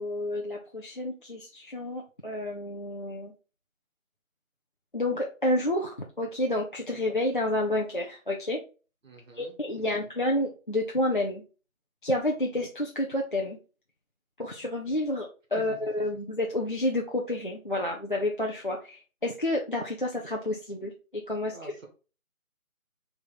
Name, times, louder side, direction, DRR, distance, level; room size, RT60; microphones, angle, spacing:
voice 1, 0.0-3.3 4.9-8.6 9.3-11.4 12.0-13.6 14.4-21.6, left 1 dB, 40° left, -2 dB, 0.5 m, -30 dB
voice 2, 9.0-10.1 15.7-15.8 21.5-21.9, right 3 dB, 65° right, 2 dB, 1.6 m, -49 dB
4.2 x 3.4 x 3.8 m, 0.34 s
figure-of-eight pair, 165°, 42 cm